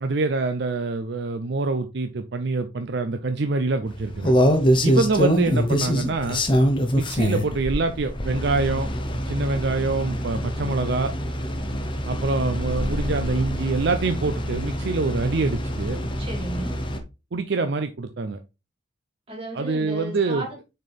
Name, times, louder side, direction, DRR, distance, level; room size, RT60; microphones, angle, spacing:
voice 1, 0.0-4.3 4.8-6.4 6.9-8.9 9.3-11.1 12.1-16.0 17.3-18.4 19.5-20.5, right 3 dB, 60° right, 0.5 m, -25 dB
sound 1, 3.9-17.0, equal, 25° left, 0.9 m, -25 dB
voice 2, 16.2-16.8 19.3-20.6, right 1 dB, 30° right, 2.4 m, -34 dB
6.3 x 4.4 x 3.4 m
head